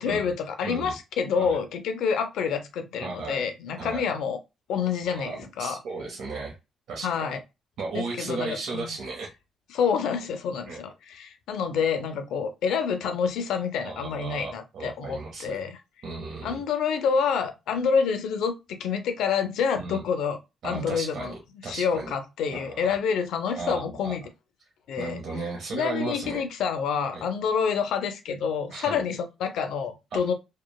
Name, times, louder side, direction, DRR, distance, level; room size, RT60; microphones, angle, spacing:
voice 1, 0.0-4.4 4.7-5.8 7.0-7.4 7.9-8.9 9.7-15.8 16.4-20.4 20.6-21.3 21.6-24.2 24.9-25.2 25.7-30.3, left 6 dB, 80° left, 0.5 m, -28 dB
voice 2, 0.6-0.9 1.4-1.6 3.0-3.5 3.8-4.1 5.0-6.6 6.9-7.1 7.8-9.3 10.7-10.8 13.8-15.6 16.0-16.6 19.8-20.0 20.6-22.1 22.5-23.0 23.6-24.1 25.0-26.4 27.1-27.2 28.7-29.0 30.1-30.2, right 3 dB, 70° right, 0.7 m, -35 dB
3.0 x 2.1 x 2.2 m
cardioid pair, 90°, 0 cm